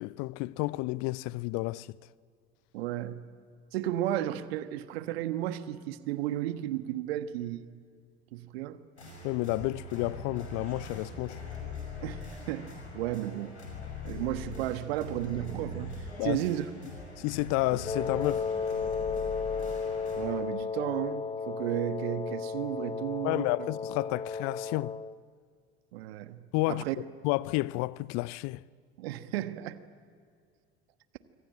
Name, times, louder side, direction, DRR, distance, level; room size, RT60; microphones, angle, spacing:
voice 1, 0.0-2.0 9.2-11.4 16.2-16.4 17.2-18.5 23.2-24.9 26.5-26.8 27.2-28.6, left 21 dB, 55° left, 0.6 m, -31 dB
voice 2, 2.7-3.2 3.7-7.8 8.3-8.8 12.0-12.7 12.9-13.6 14.0-15.9 16.2-16.9 20.2-23.7 25.9-27.0 29.0-29.8, right 13 dB, 70° right, 1.4 m, -33 dB
sound 1, 9.0-20.2, left 2 dB, 90° left, 5.9 m, -42 dB
Wind instrument woodwind instrument, 17.8-25.2, left 5 dB, 15° left, 0.8 m, -34 dB
26.0 x 24.5 x 9.0 m
figure-of-eight pair, 65°, 32 cm